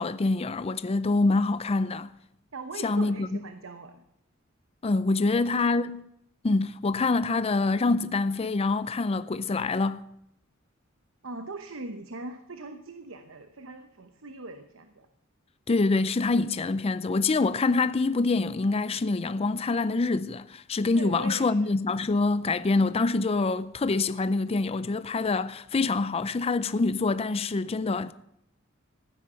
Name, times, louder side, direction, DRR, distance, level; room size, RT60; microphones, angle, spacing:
voice 1, 0.0-2.1 2.8-3.3 4.8-6.1 6.4-10.0 15.7-28.1, left 3 dB, 30° left, 0.4 m, -25 dB
voice 2, 2.5-4.0 5.2-5.7 11.2-15.1 20.9-21.7, right 3 dB, 70° right, 1.0 m, -41 dB
15.0 x 9.7 x 6.8 m
head